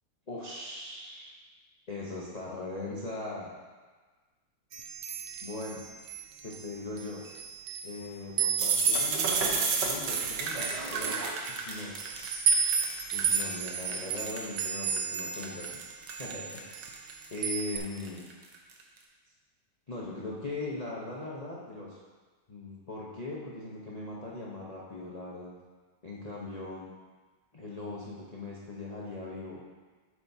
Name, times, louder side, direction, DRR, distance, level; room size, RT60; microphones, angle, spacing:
voice 1, 0.3-1.3 1.9-3.5 5.4-5.8 6.4-7.2 7.8-11.2 11.5-12.5 13.1-15.8 16.2-17.0 17.3-18.2 19.9-22.0 22.5-25.5 26.0-26.9 27.5-29.6, left 2 dB, 90° left, -5 dB, 0.3 m, -40 dB
sound 1, 4.7-6.6 7.0-8.0 8.4-15.8 16.1-17.1 17.4-17.8, right 6 dB, 80° right, 1.5 m, -32 dB
sound 2, 8.6-14.6 15.0-18.8, right 4 dB, 65° right, 1.4 m, -33 dB
8.2 x 7.7 x 2.7 m, 1.4 s
omnidirectional pair, 2.3 m